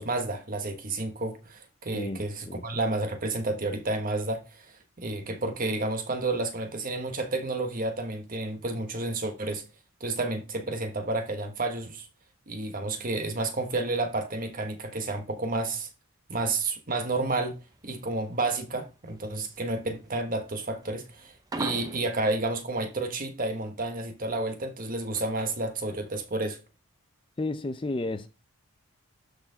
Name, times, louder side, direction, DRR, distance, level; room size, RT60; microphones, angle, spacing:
voice 1, 0.0-9.6 10.0-12.1 12.5-15.9 16.3-17.6 17.8-26.6, right 2 dB, 40° right, 1.3 m, -31 dB
voice 2, 1.9-2.6 27.4-28.3, left 2 dB, 25° left, 0.4 m, -32 dB
sound 1, 17.6-22.6, right 2 dB, 15° right, 0.7 m, -39 dB
12.0 x 4.4 x 4.0 m
head